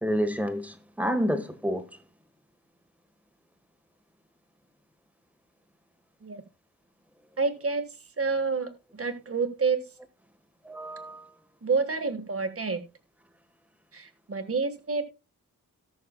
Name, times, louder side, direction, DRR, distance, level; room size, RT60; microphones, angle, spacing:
voice 1, 0.0-1.8 10.6-11.3, equal, 5° right, 1.3 m, -29 dB
voice 2, 7.4-7.9 8.2-9.8 11.6-12.8 13.9-15.0, right 4 dB, 40° right, 1.5 m, -28 dB
18.5 x 6.4 x 2.2 m
wide cardioid pair, 140°, 37 cm